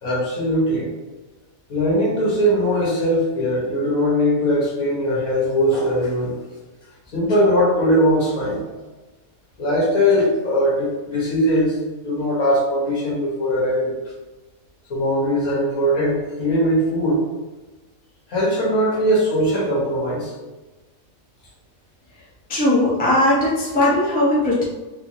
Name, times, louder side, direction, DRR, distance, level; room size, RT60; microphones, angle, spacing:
voice 1, 0.0-0.9 1.7-6.3 7.1-8.6 9.6-11.8 12.0-13.9 14.9-17.2 18.3-20.3, equal, 75° left, -6 dB, 1.7 m, -20 dB
voice 2, 22.5-24.6, left 1 dB, 10° left, -8 dB, 0.7 m, -18 dB
3.5 x 3.3 x 2.7 m, 1.2 s
omnidirectional pair, 1.5 m